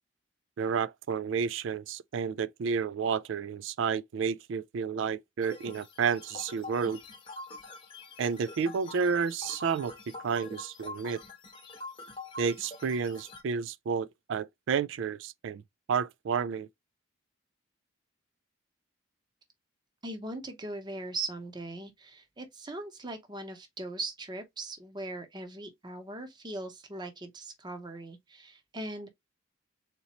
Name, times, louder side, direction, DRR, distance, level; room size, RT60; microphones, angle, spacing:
voice 1, 0.6-7.0 8.2-9.9 10.2-11.2 12.4-15.6 15.9-16.7, right 6 dB, 65° right, 0.3 m, -31 dB
sound 1, 5.4-13.4, left 2 dB, 25° left, 0.9 m, -45 dB
voice 2, 20.0-29.1, right 2 dB, 20° right, 0.7 m, -40 dB
3.9 x 2.9 x 2.8 m
head